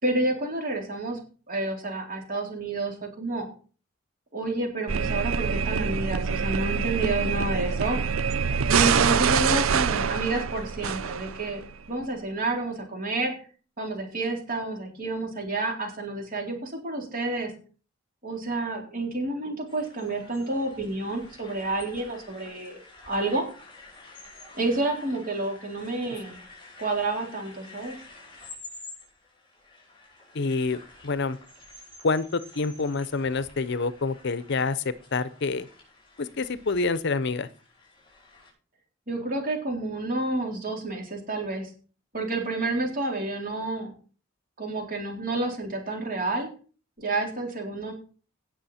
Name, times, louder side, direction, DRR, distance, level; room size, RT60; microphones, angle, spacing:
voice 1, 0.0-1.2 1.5-3.5 4.3-8.1 8.7-11.6 11.9-13.3 13.8-17.5 18.2-22.8 23.1-23.5 24.5-26.4 26.8-28.0 39.1-41.7 42.1-43.9 44.6-46.5 47.0-47.9, right 2 dB, 45° right, 1 dB, 3.9 m, -29 dB
sound 1, 4.9-11.7, right 6 dB, 90° right, 0.5 m, -25 dB
sound 2, 19.7-38.5, left 3 dB, 25° left, 6.1 m, -50 dB
voice 2, 30.3-31.4 32.0-35.7 36.2-37.5, left 4 dB, 60° left, 15 dB, 0.6 m, -27 dB
18.0 x 6.3 x 4.3 m, 0.39 s
head